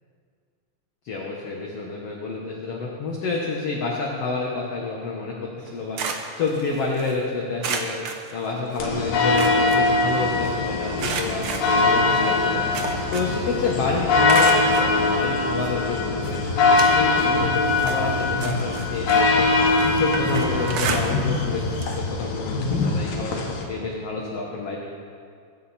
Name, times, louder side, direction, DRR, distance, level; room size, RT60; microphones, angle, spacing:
voice 1, 1.0-6.0 6.4-8.0 8.3-19.5 19.8-24.8, left 4 dB, 55° left, -2 dB, 2.0 m, -29 dB
sound 1, 5.6-7.1 7.6-8.9 9.2-10.5 11.0-13.5 13.8-14.9 15.6-15.7 16.2-17.3 17.7-21.5 21.7-22.0 22.3-22.4 23.6-23.7, right 5 dB, 85° right, 1.2 m, -32 dB
sound 2, 8.8-23.6, left 3 dB, 85° left, 3.2 m, -22 dB
22.5 x 10.0 x 4.3 m, 2.2 s
omnidirectional pair, 3.9 m